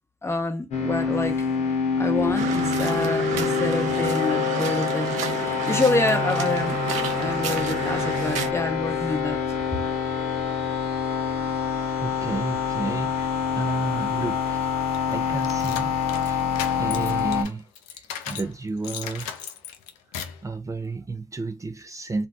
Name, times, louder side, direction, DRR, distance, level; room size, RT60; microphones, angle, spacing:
voice 1, 0.2-1.4 2.0-5.1 5.4-9.4, left 2 dB, 20° left, 0.9 m, -27 dB
sound 1, 0.7-17.4, left 7 dB, 70° left, 0.9 m, -26 dB
sound 2, 2.4-8.5, right 8 dB, 75° right, 0.5 m, -30 dB
voice 2, 12.0-14.7 15.1-15.9 16.2-16.5 16.7-19.4 20.4-22.3, right 3 dB, 25° right, 0.6 m, -32 dB
sound 3, 14.9-18.5 18.8-20.4, left 8 dB, 90° left, 0.4 m, -36 dB
2.5 x 2.1 x 3.6 m
hypercardioid pair, 45°, 12 cm